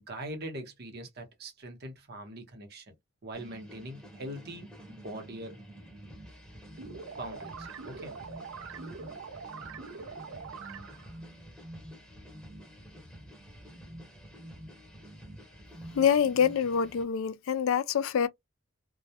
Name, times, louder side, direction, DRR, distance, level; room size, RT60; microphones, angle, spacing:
voice 1, 0.1-2.9 3.2-5.6 7.2-8.2, right 1 dB, 50° right, 0.8 m, -42 dB
sound 1, 3.3-17.0, equal, 5° left, 0.8 m, -48 dB
sound 2, 6.8-11.2, right 5 dB, 75° right, 0.5 m, -43 dB
voice 2, 15.9-18.3, left 7 dB, 75° left, 0.3 m, -25 dB
2.3 x 2.0 x 2.7 m
head